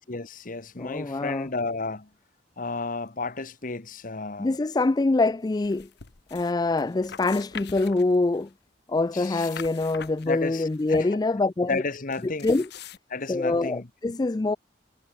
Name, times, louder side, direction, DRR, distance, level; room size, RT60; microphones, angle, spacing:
voice 1, 0.0-2.1 2.6-4.6 9.1-9.5 10.2-11.1 11.7-12.5 13.1-13.9, left 3 dB, 50° left, 1.3 m, -32 dB
voice 2, 0.8-1.5 4.4-5.9 6.3-8.5 8.9-11.8 12.2-12.7 13.3-14.6, left 2 dB, 20° left, 0.4 m, -25 dB
sound 1, 5.5-6.5 6.8-8.5 9.0-11.0 12.1-13.0, left 8 dB, 65° left, 1.1 m, -44 dB
head